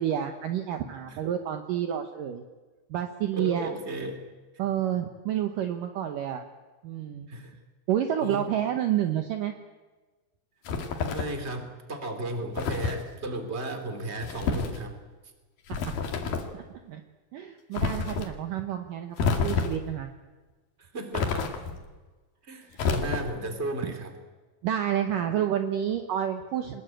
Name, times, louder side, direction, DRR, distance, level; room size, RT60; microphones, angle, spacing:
voice 1, 0.0-2.4 2.9-3.7 4.6-6.4 6.8-7.3 7.9-9.5 16.5-17.0 17.3-20.1 24.6-26.8, right 10 dB, 75° right, 6 dB, 1.9 m, -29 dB
voice 2, 3.3-4.2 7.3-7.5 8.2-8.5 11.0-15.0 20.8-21.5 22.4-24.1, right 1 dB, 15° right, 6 dB, 2.5 m, -34 dB
sound 1, 10.6-11.4 12.6-13.0 14.2-14.8 15.7-16.5 17.7-18.3 19.2-19.9 21.1-21.8 22.7-23.5, left 5 dB, 55° left, 3.4 m, -29 dB
25.0 x 20.0 x 9.1 m, 1.3 s
omnidirectional pair, 5.6 m